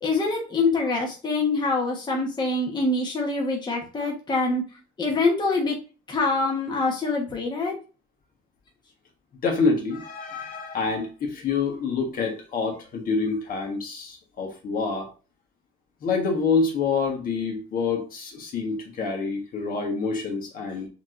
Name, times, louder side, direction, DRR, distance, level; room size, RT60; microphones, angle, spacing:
voice 1, 0.0-4.6 5.0-5.8 6.1-7.8, left 3 dB, 25° left, -1 dB, 1.1 m, -25 dB
voice 2, 9.4-15.1 16.0-20.9, left 4 dB, 55° left, 2 dB, 1.4 m, -27 dB
5.8 x 2.9 x 2.5 m, 0.34 s
cardioid pair, 110°, 17 cm